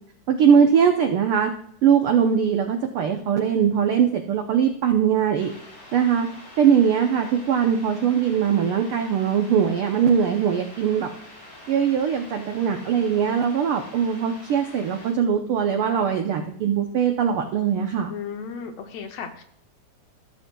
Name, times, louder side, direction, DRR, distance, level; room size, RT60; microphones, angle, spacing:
voice 1, 0.3-1.5 1.8-5.5 5.9-6.3 6.6-11.1 11.7-18.1, right 7 dB, 85° right, 4 dB, 1.2 m, -21 dB
sound 1, 5.4-15.1, left 1 dB, 55° left, 4.5 m, -45 dB
voice 2, 18.1-19.4, left 6 dB, 70° left, 5 dB, 1.7 m, -35 dB
15.5 x 7.3 x 2.3 m, 0.67 s
omnidirectional pair, 3.4 m